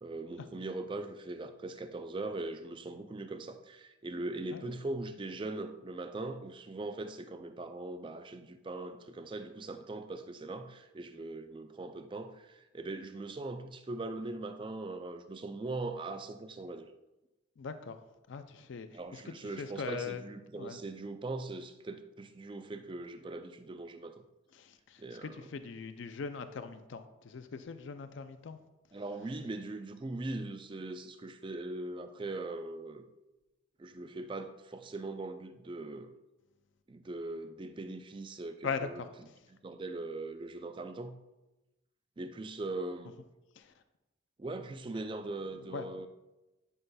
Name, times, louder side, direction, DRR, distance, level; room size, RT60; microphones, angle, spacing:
voice 1, 0.0-16.9 18.9-24.2 25.0-25.4 28.9-33.1 33.8-36.2 36.9-39.0 39.6-41.2 42.2-43.1 44.4-46.1, right 2 dB, 25° right, 0.3 m, -40 dB
voice 2, 17.6-18.0 18.3-20.2 20.5-20.8 24.5-28.6 38.6-39.3 43.6-43.7 45.6-45.9, left 5 dB, 60° left, 0.4 m, -41 dB
11.0 x 5.5 x 2.2 m
head